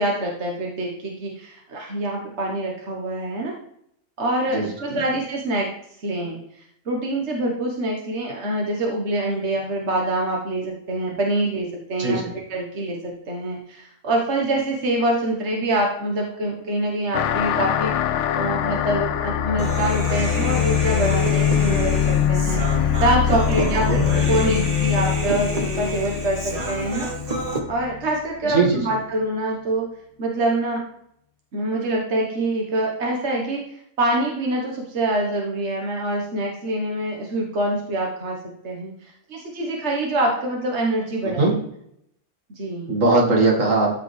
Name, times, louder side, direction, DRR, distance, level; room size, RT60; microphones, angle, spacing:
voice 1, 0.0-3.5 4.2-5.7 6.0-6.4 6.8-12.2 12.5-17.9 18.3-27.1 27.7-29.9 30.2-30.8 31.5-38.4 38.6-38.9 39.3-41.5 42.5-42.9, right 1 dB, 60° right, -1 dB, 1.6 m, -25 dB
voice 2, 12.0-12.3 23.8-24.0 28.5-28.9 41.4-41.5 42.9-44.0, right 3 dB, 80° right, -1 dB, 2.4 m, -19 dB
sound 1, 17.1-28.1, left 10 dB, 75° left, 0.9 m, -23 dB
Human voice, 19.6-27.6, right 1 dB, 30° right, 1.2 m, -29 dB
14.0 x 5.0 x 3.3 m, 0.72 s
omnidirectional pair, 1.3 m